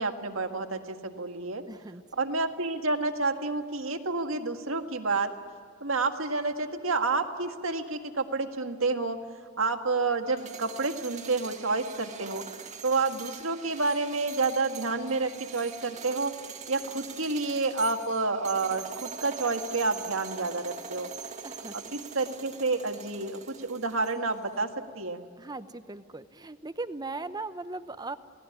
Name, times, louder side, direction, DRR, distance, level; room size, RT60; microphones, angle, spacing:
voice 1, 0.0-1.6 2.2-5.3 5.8-9.2 9.6-12.4 12.8-16.3 16.7-21.1 21.7-24.7 25.0-25.2, right 3 dB, 75° right, 5 dB, 1.8 m, -29 dB
voice 2, 1.6-2.2 21.4-21.8 25.4-28.2, right 3 dB, 20° right, 11 dB, 0.8 m, -38 dB
sound 1, 10.3-24.4, right 6 dB, 35° right, 1.7 m, -43 dB
29.5 x 18.0 x 10.0 m, 2.1 s
head